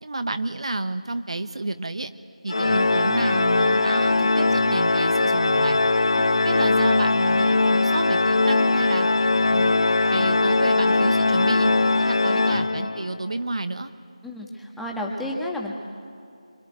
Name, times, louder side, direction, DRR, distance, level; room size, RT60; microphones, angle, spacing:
voice 1, 0.0-2.1 2.4-5.8 6.4-9.8 10.1-11.7 12.0-13.9, right 2 dB, 60° right, 10 dB, 1.1 m, -30 dB
Organ, 2.5-13.2, left 3 dB, 55° left, 0.9 m, -20 dB
voice 2, 14.2-15.8, left 1 dB, ahead, -2 dB, 1.5 m, -31 dB
25.5 x 25.0 x 9.3 m, 2.5 s
figure-of-eight pair, 165°, 4 cm